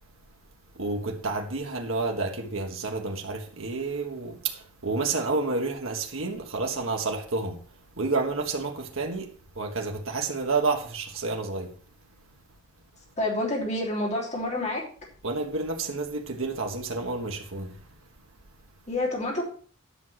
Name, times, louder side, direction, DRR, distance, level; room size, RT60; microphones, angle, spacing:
voice 1, 0.7-7.6 8.0-11.8 15.2-17.8, right 3 dB, 70° right, 1.5 m, -30 dB
voice 2, 13.2-14.9 18.9-19.4, left 1 dB, 35° left, 3.3 m, -28 dB
10.5 x 6.3 x 5.8 m
head